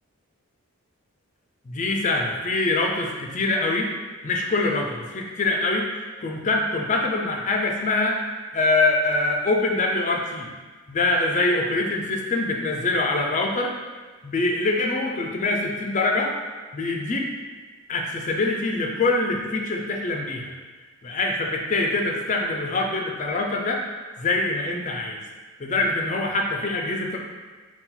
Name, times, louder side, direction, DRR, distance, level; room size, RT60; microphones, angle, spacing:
voice 1, 1.7-3.9 4.2-8.2 8.5-10.5 10.9-13.7 14.2-16.3 16.7-17.3 17.9-20.5 21.0-23.8 24.2-25.2 25.6-27.2, left 2 dB, 35° left, 1 dB, 0.4 m, -24 dB
4.3 x 2.3 x 3.8 m, 1.4 s
head